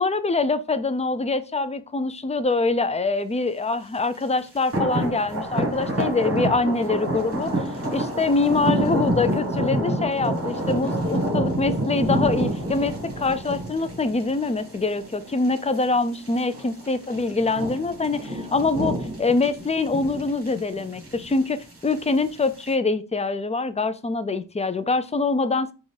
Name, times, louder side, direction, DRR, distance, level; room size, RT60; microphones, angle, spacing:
voice 1, 0.0-7.5 7.9-25.7, left 3 dB, 15° left, 0.3 m, -24 dB
sound 1, 4.1-4.2 4.6-22.7, right 1 dB, 35° right, 1.4 m, -28 dB
5.0 x 2.4 x 3.2 m
wide cardioid pair, 55°, 43 cm